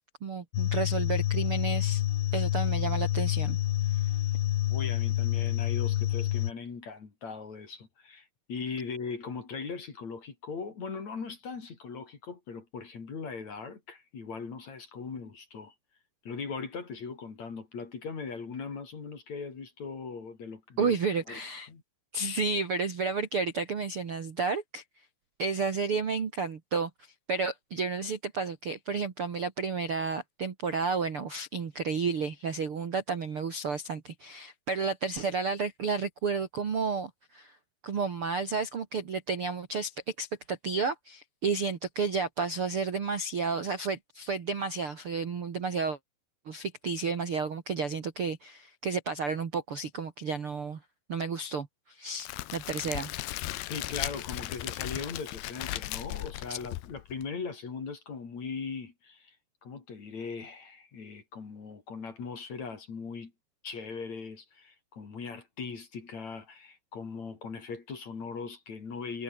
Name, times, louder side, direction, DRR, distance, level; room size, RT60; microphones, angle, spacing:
voice 1, 0.2-2.0 2.3-3.6 4.0-4.1 20.8-21.7 22.1-24.8 25.4-37.6 37.8-46.0 46.5-50.8 51.1-53.1 56.5-56.6, right 4 dB, 45° right, 1.9 m, -31 dB
sound 1, 0.5-6.5, left 14 dB, 90° left, 3.8 m, -28 dB
voice 2, 4.7-15.7 16.2-21.0 21.3-21.4 21.7-21.8 53.5-59.4 59.6-63.3 63.6-69.2, left 5 dB, 40° left, 4.6 m, -39 dB
Crackle, 52.2-57.2, left 16 dB, 75° left, 2.8 m, -37 dB
omnidirectional pair, 5.1 m